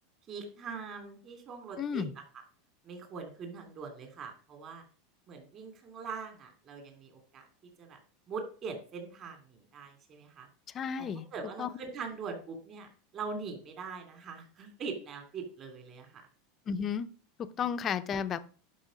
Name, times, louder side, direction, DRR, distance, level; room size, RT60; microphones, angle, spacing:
voice 1, 0.3-2.0 2.8-4.8 5.3-7.5 7.8-8.0 8.3-10.5 11.3-12.9 13.1-16.2, right 5 dB, 30° right, 5 dB, 2.7 m, -42 dB
voice 2, 1.8-2.1 10.7-11.3 11.6-11.7 16.7-17.1 17.4-18.4, left 7 dB, 25° left, 12 dB, 0.7 m, -33 dB
11.5 x 5.5 x 5.1 m, 0.39 s
supercardioid pair, 155°, 0 cm